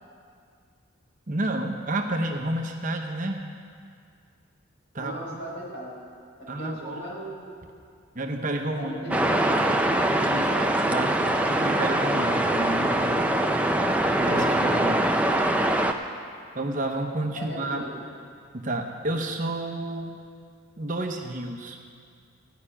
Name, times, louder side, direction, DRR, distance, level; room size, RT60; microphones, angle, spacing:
voice 1, 1.3-3.4 4.9-5.4 6.5-7.0 8.1-9.3 10.2-10.5 10.9-13.4 14.2-15.0 16.5-17.9 18.5-20.2 20.8-21.8, right 1 dB, 35° right, 3 dB, 0.8 m, -30 dB
voice 2, 5.0-5.9 6.6-7.5 8.8-9.6 10.3-10.7 17.3-18.0, equal, 55° left, -5 dB, 4.4 m, -37 dB
sound 1, 9.1-15.9, right 1 dB, 5° right, 0.5 m, -23 dB
15.0 x 5.8 x 9.9 m, 2.2 s
head